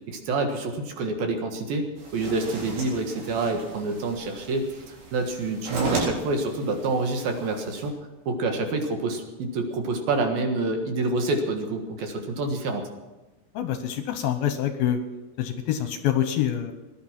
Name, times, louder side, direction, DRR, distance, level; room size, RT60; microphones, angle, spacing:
voice 1, 0.1-1.9 2.1-8.0 8.3-12.8, right 2 dB, 65° right, 4 dB, 3.1 m, -27 dB
sound 1, 2.0-7.9, right 2 dB, 85° right, 6.3 m, -35 dB
voice 2, 13.5-15.0 15.4-16.7, left 10 dB, 75° left, 8 dB, 2.5 m, -26 dB
18.5 x 11.0 x 5.9 m, 1.1 s
omnidirectional pair, 4.9 m